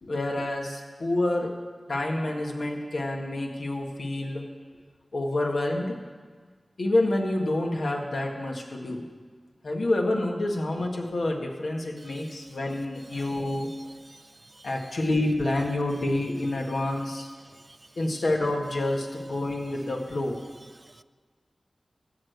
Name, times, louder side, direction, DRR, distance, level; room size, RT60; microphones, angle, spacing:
voice 1, 0.0-1.5 1.9-4.5 5.1-6.0 6.8-9.0 9.6-13.7 14.6-17.3 18.0-20.4, left 1 dB, 75° left, 1 dB, 1.7 m, -28 dB
voice 2, 13.1-14.7 17.7-17.8 20.8-21.0, right 2 dB, 35° right, 15 dB, 0.3 m, -51 dB
14.5 x 6.3 x 8.1 m, 1.5 s
wide cardioid pair, 65°, 0 cm